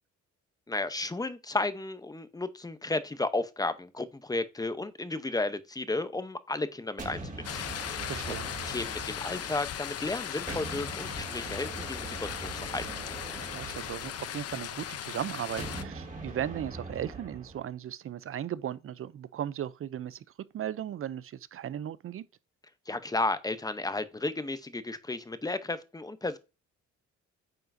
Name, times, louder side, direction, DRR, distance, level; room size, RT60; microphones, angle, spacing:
voice 1, 0.7-8.4 8.6-12.8 22.9-26.4, left 2 dB, 10° left, 0.7 m, -33 dB
sound 1, 7.0-10.0 10.5-14.7 15.6-17.7, right 2 dB, 25° right, 2.5 m, -42 dB
sound 2, 7.4-15.8, left 10 dB, 55° left, 0.7 m, -38 dB
voice 2, 8.0-8.5 13.4-20.2 20.5-22.2, right 10 dB, 45° right, 0.5 m, -36 dB
8.9 x 5.6 x 2.6 m
cardioid pair, 90°, 30 cm